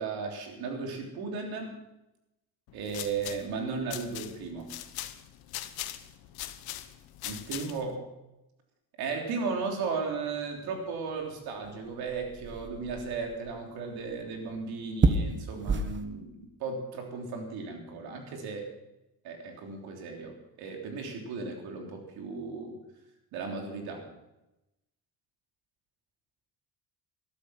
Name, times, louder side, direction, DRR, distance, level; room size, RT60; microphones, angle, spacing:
voice 1, 0.0-1.7 2.7-4.7 7.2-8.1 9.0-18.7 19.2-22.8 23.3-24.0, right 4 dB, 85° right, 2 dB, 3.4 m, -35 dB
sound 1, 2.7-8.0, left 13 dB, 80° left, 1.1 m, -41 dB
sound 2, 9.6-16.0, right 3 dB, 30° right, 1.4 m, -33 dB
13.5 x 12.5 x 5.9 m, 0.93 s
cardioid pair, 100°, 36 cm